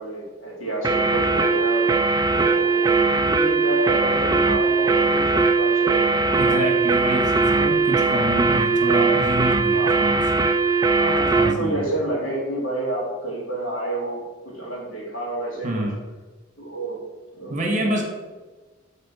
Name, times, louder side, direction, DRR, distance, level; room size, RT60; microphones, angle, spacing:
voice 1, 0.0-1.9 2.3-6.7 7.1-7.8 9.7-10.0 11.0-15.9 16.6-17.0 17.3-18.0, right 1 dB, 75° left, -2 dB, 2.6 m, -30 dB
sound 1, 0.8-11.6, right 3 dB, 20° right, 0.3 m, -20 dB
voice 2, 6.4-10.2 11.3-11.9 15.6-15.9 17.5-18.0, right 1 dB, 35° right, 2 dB, 1.4 m, -27 dB
12.5 x 4.2 x 4.2 m, 1.3 s
head